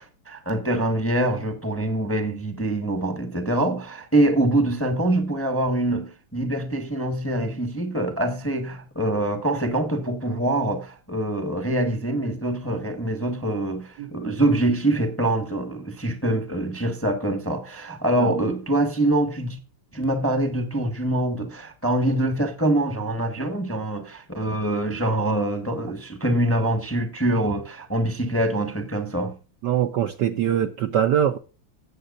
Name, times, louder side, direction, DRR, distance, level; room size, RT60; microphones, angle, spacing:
voice 1, 0.0-19.6 19.9-29.3, right 1 dB, 10° left, 0.9 m, -24 dB
voice 2, 29.6-31.4, right 9 dB, 70° right, 1.1 m, -22 dB
18.0 x 7.6 x 2.5 m
omnidirectional pair, 2.4 m